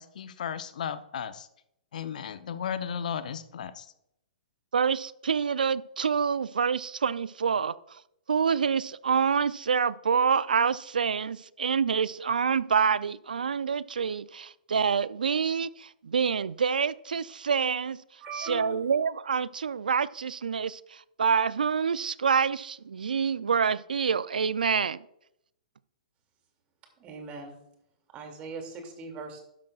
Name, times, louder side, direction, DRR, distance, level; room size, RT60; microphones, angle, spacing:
voice 1, 0.0-1.5 1.9-3.9, left 8 dB, 65° left, 0.8 m, -35 dB
voice 2, 4.7-8.0 8.3-18.0 18.4-25.0, right 6 dB, 80° right, 0.4 m, -27 dB
voice 3, 18.2-18.8 27.0-27.6 28.1-29.4, right 3 dB, 30° right, 2.4 m, -39 dB
12.0 x 10.5 x 2.4 m
hypercardioid pair, 120°, 5 cm